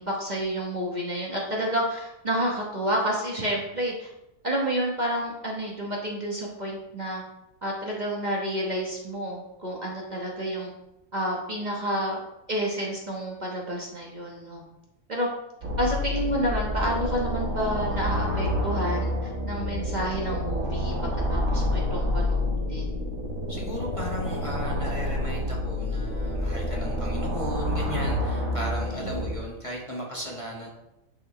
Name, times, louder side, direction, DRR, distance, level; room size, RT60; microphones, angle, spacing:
voice 1, 0.0-4.1 4.4-7.2 7.6-10.7 11.1-12.2 12.5-14.6 15.1-15.3 15.8-20.9 21.3-22.9, equal, 35° right, -3 dB, 1.3 m, -29 dB
sound 1, 15.6-29.3, left 1 dB, 80° right, 1.7 m, -28 dB
voice 2, 23.5-30.7, equal, 25° left, -3 dB, 1.3 m, -36 dB
10.5 x 4.7 x 3.2 m, 0.91 s
omnidirectional pair, 1.4 m